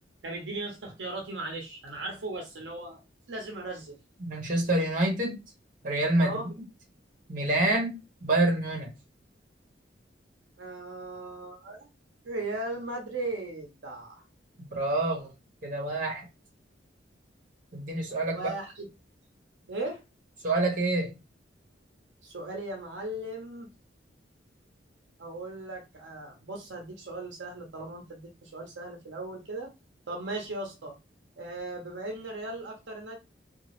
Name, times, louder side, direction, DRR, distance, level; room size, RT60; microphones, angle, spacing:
voice 1, 0.2-3.0 3.3-4.0 6.2-6.5 10.6-11.9 12.2-14.2 18.3-18.9 19.7-20.0 22.2-23.7 25.2-29.7 30.1-31.0 31.4-33.2, right 2 dB, 75° right, 0.7 m, -37 dB
voice 2, 4.2-5.4 5.8-6.4 7.3-8.9 14.6-15.3 15.6-16.3 17.7-18.5 20.4-21.1, right 2 dB, 45° right, 1.1 m, -27 dB
2.7 x 2.4 x 3.0 m
head